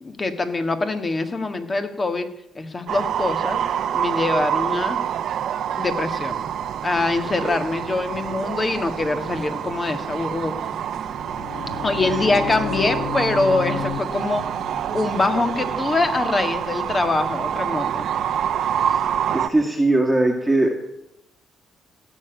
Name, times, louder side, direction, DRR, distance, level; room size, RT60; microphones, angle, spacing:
voice 1, 0.0-2.3 2.6-3.6 3.9-5.0 5.7-6.5 6.8-10.6 11.8-14.5 14.9-18.1, left 3 dB, 30° left, 8 dB, 1.7 m, -24 dB
sound 1, 2.9-19.5, right 9 dB, 70° right, 0.9 m, -27 dB
sound 2, 10.9-16.7, left 9 dB, 70° left, 0.9 m, -34 dB
voice 2, 18.8-19.1 19.3-20.7, right 2 dB, 10° right, 0 dB, 1.8 m, -20 dB
16.0 x 7.1 x 9.1 m, 0.82 s
cardioid pair, 90°, 0 cm